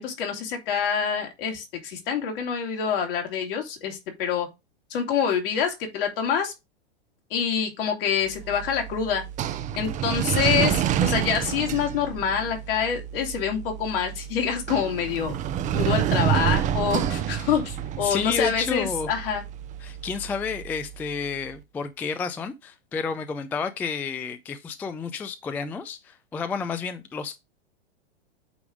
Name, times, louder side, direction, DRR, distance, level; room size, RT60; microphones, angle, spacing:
voice 1, 0.0-4.5 4.9-6.5 7.3-9.2 9.7-15.3 15.7-19.4, left 7 dB, 60° left, 2.6 m, -26 dB
tafel rauf und runter, 8.2-21.3, right 10 dB, 25° right, 0.6 m, -29 dB
voice 2, 18.0-19.1 19.8-27.4, left 5 dB, 5° left, 0.3 m, -31 dB
8.4 x 3.4 x 5.0 m
hypercardioid pair, 110°, 32 cm